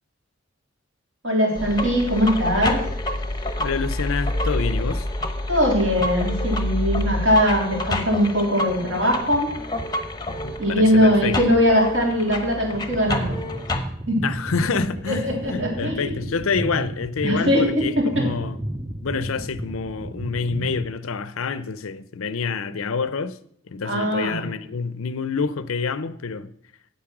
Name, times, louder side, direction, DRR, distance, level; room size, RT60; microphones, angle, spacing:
voice 1, 1.2-2.8 5.5-9.5 10.6-13.4 14.1-14.2 15.1-16.2 17.2-18.3 23.8-24.5, equal, 60° right, 3.3 m, -21 dB
sound 1, 1.6-13.8, left 1 dB, 20° left, 0.8 m, -28 dB
voice 2, 3.6-5.1 10.4-11.4 14.2-18.6 19.0-23.4 23.7-26.5, left 5 dB, 75° left, 0.6 m, -27 dB
sound 2, 12.9-20.9, right 1 dB, 10° right, 0.5 m, -32 dB
8.6 x 8.3 x 6.0 m
head